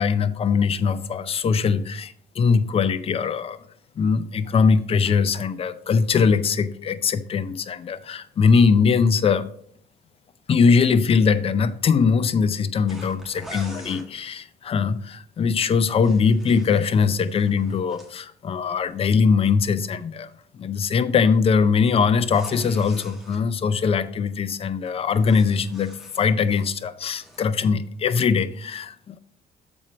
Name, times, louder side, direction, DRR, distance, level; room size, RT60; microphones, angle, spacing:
voice 1, 0.0-3.6 4.0-9.5 10.5-20.3 20.5-29.2, left 5 dB, 35° left, 13 dB, 0.5 m, -21 dB
sound 1, 12.9-14.1 15.7-18.1 22.2-23.4 24.9-26.7 27.0-27.5, equal, ahead, 1.5 m, -44 dB
7.1 x 4.4 x 5.0 m, 0.66 s
cardioid pair, 110°, 17 cm